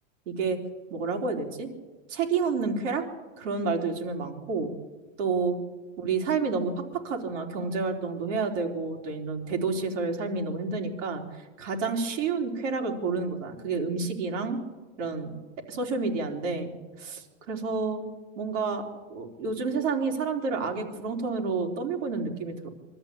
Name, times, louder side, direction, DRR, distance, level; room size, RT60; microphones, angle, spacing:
voice 1, 0.3-0.6 0.9-1.7 2.1-3.1 3.4-4.7 5.2-5.6 6.0-11.2 11.6-14.6 15.0-15.3 15.7-16.7 17.0-18.1 18.4-22.7, right 4 dB, 65° right, 2 dB, 3.9 m, -29 dB
23.5 x 13.5 x 8.5 m, 1.3 s
supercardioid pair, 170°, 39 cm